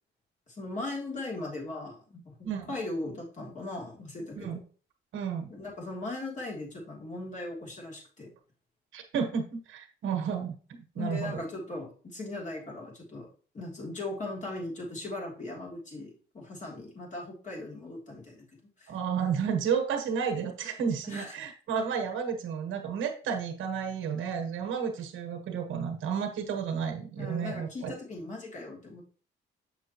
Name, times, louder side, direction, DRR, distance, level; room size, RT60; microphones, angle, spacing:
voice 1, 0.5-2.3 2.7-4.6 5.5-8.3 11.0-13.3 13.5-18.5 18.8-18.9 21.1-21.3 27.2-29.0, left 2 dB, 40° left, -2 dB, 3.0 m, -38 dB
voice 2, 2.4-2.7 4.3-4.6 5.1-5.5 8.9-10.5 10.9-11.4 18.9-28.0, right 7 dB, 75° right, 4 dB, 1.4 m, -32 dB
6.9 x 6.1 x 3.0 m, 0.41 s
cardioid pair, 90°, 20 cm